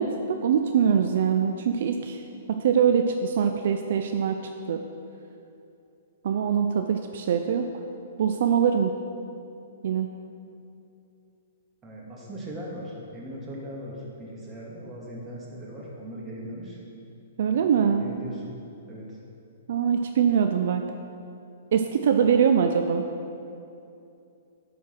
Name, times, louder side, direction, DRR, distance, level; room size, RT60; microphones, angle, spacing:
voice 1, 0.0-2.2 2.5-4.4 4.7-4.8 6.2-7.6 8.2-8.9 9.8-10.1 17.4-18.1 19.7-20.8 21.7-23.1, right 7 dB, 65° right, 6 dB, 0.5 m, -23 dB
voice 2, 11.8-16.8 17.5-18.5 18.9-19.2, equal, 15° right, -5 dB, 2.2 m, -39 dB
11.0 x 4.6 x 5.9 m, 2.7 s
hypercardioid pair, 125°, 0 cm